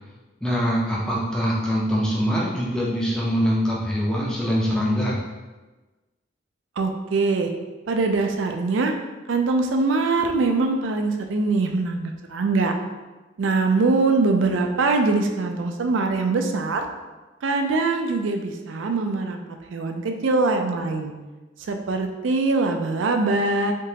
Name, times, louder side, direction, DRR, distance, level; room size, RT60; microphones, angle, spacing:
voice 1, 0.4-5.2, equal, 5° left, -6 dB, 0.4 m, -23 dB
voice 2, 6.8-7.5 7.9-8.9 9.3-12.7 13.4-16.9 17.4-19.4 19.7-21.1 21.6-23.7, right 3 dB, 90° right, 5 dB, 0.4 m, -22 dB
3.4 x 2.9 x 2.8 m, 1.2 s
head